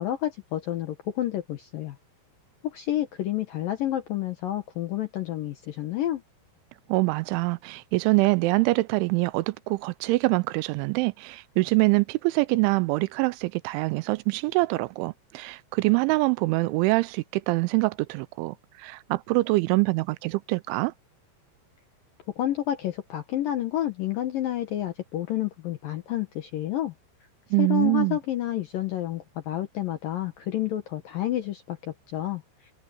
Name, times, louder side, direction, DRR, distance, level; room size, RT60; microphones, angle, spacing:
voice 1, 0.0-2.0 2.6-6.2 22.4-26.9 27.6-32.4, left 12 dB, 70° left, 2.1 m, -29 dB
voice 2, 6.9-20.9 27.5-28.2, right 23 dB, 85° right, 2.9 m, -24 dB
omnidirectional pair, 5.5 m